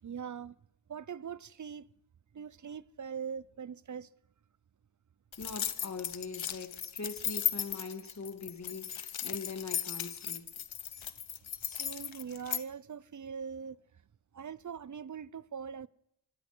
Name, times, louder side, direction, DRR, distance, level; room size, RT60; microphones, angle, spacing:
voice 1, 0.0-0.6 0.9-1.9 2.3-4.1 11.0-11.1 11.6-13.8 14.3-15.9, right 7 dB, 40° right, 0.6 m, -42 dB
sound 1, 5.3-12.6, left 9 dB, 85° left, 1.1 m, -36 dB
voice 2, 5.4-10.5, left 4 dB, 35° left, 2.5 m, -42 dB
25.0 x 17.0 x 6.2 m
wide cardioid pair, 95°, 45 cm